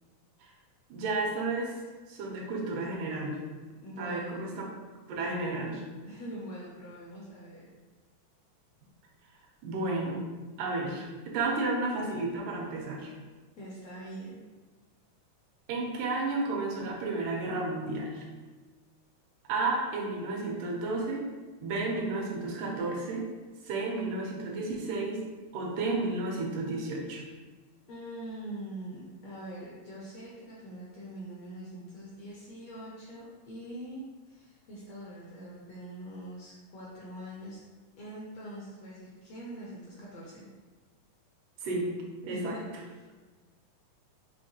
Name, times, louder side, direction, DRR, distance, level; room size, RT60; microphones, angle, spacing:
voice 1, 0.9-1.7 2.1-3.4 4.0-4.5 5.1-5.8 9.6-10.3 10.6-13.1 15.7-18.2 19.5-21.2 21.6-23.3 23.6-25.2 25.5-27.2 41.6-41.9 42.2-42.6, right 2 dB, 80° right, -1 dB, 2.4 m, -32 dB
voice 2, 3.8-4.5 6.0-7.7 13.5-14.4 27.9-37.6 38.0-40.5 42.3-42.6, right 1 dB, 75° left, -6 dB, 1.5 m, -43 dB
5.5 x 3.0 x 2.8 m, 1.3 s
omnidirectional pair, 3.6 m